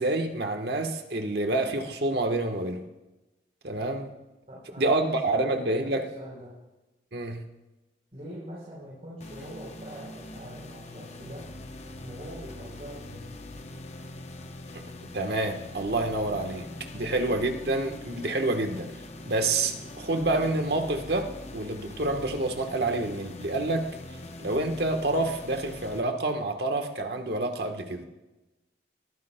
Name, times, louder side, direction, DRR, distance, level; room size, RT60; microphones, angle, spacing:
voice 1, 0.0-2.8 3.6-4.1 4.8-6.0 7.1-7.5 14.7-14.8 15.1-28.0, right 2 dB, 65° right, 5 dB, 1.3 m, -28 dB
voice 2, 4.5-5.9 6.1-6.5 8.1-11.4 12.0-13.3 16.9-17.2, equal, 40° right, -6 dB, 3.8 m, -43 dB
sound 1, 9.2-26.0, left 2 dB, 40° left, 0.8 m, -43 dB
21.0 x 14.0 x 2.2 m, 1.0 s
head